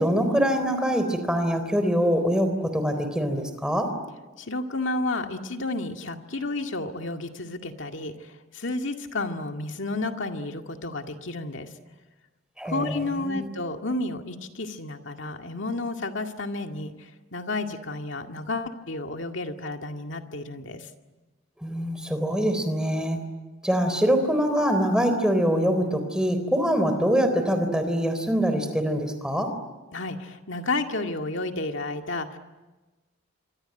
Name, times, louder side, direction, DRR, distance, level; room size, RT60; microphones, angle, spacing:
voice 1, 0.0-3.9 12.6-13.5 21.6-23.2 23.6-29.5, equal, 5° right, 8 dB, 3.7 m, -24 dB
voice 2, 4.4-11.7 12.6-20.9 29.9-32.4, left 2 dB, 65° left, 5 dB, 2.1 m, -31 dB
26.0 x 25.0 x 9.0 m, 1.2 s
head